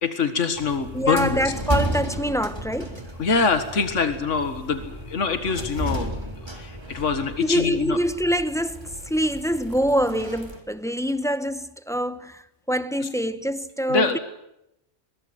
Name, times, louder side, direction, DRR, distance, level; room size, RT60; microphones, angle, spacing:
voice 1, 0.0-1.4 3.2-8.0 13.9-14.2, left 5 dB, 75° left, 2.0 m, -24 dB
sound 1, 0.6-10.6, right 1 dB, 20° right, 3.5 m, -33 dB
voice 2, 0.9-3.0 7.4-14.2, equal, 5° left, 0.9 m, -25 dB
22.5 x 22.0 x 7.9 m
omnidirectional pair, 1.3 m